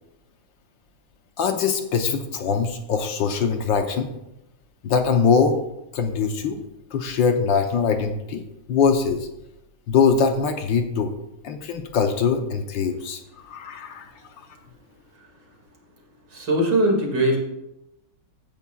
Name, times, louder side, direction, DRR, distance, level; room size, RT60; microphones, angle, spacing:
voice 1, 1.4-4.1 4.8-5.6 5.9-6.6 6.9-8.4 8.7-9.3 9.9-11.2 11.4-14.1, left 6 dB, 70° left, 5 dB, 1.5 m, -22 dB
voice 2, 16.3-17.4, right 1 dB, 55° right, 0 dB, 2.8 m, -20 dB
15.5 x 9.6 x 2.3 m, 0.88 s
omnidirectional pair, 2.2 m